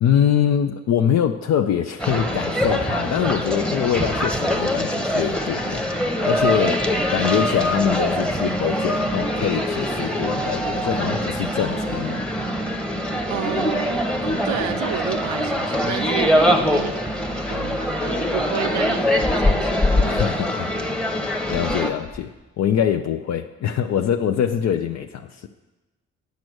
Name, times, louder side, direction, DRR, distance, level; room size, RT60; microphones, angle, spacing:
voice 1, 0.0-5.9 6.2-6.8 7.1-12.2 20.0-20.7 21.5-22.3 22.6-25.5, left 9 dB, 60° left, 6 dB, 0.5 m, -23 dB
sound 1, 2.0-21.9, equal, 5° left, 0.9 m, -23 dB
voice 2, 13.3-17.0 17.5-20.2, right 10 dB, 70° right, 8 dB, 0.5 m, -31 dB
sound 2, 19.2-20.4 21.5-21.8 22.0-22.3, left 3 dB, 20° left, 1.4 m, -22 dB
9.2 x 5.3 x 6.3 m, 1.1 s
cardioid pair, 90°, 30 cm